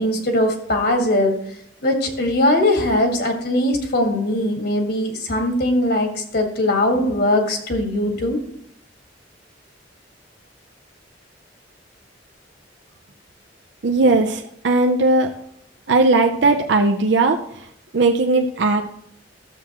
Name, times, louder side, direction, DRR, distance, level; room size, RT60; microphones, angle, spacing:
voice 1, 0.0-1.3 1.8-8.4, left 1 dB, 60° left, 4 dB, 1.7 m, -20 dB
voice 2, 13.8-15.4 15.9-19.0, right 3 dB, 75° right, 4 dB, 0.6 m, -18 dB
12.5 x 7.2 x 3.0 m, 0.72 s
head